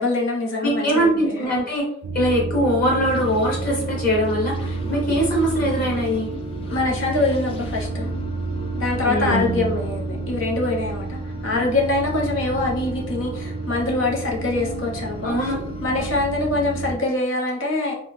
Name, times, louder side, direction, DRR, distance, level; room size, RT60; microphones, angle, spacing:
voice 1, 0.0-1.5 6.7-8.1 8.7-15.5 15.8-17.9, left 2 dB, 85° left, -1 dB, 0.7 m, -24 dB
voice 2, 0.6-1.8 2.1-6.3 9.1-9.7 15.2-15.6, equal, 50° left, -3 dB, 1.2 m, -22 dB
sound 1, 2.0-17.0, right 3 dB, 90° right, 0.3 m, -30 dB
sound 2, 3.0-16.9, left 2 dB, 30° left, 0.3 m, -37 dB
2.6 x 2.2 x 3.1 m, 0.68 s
head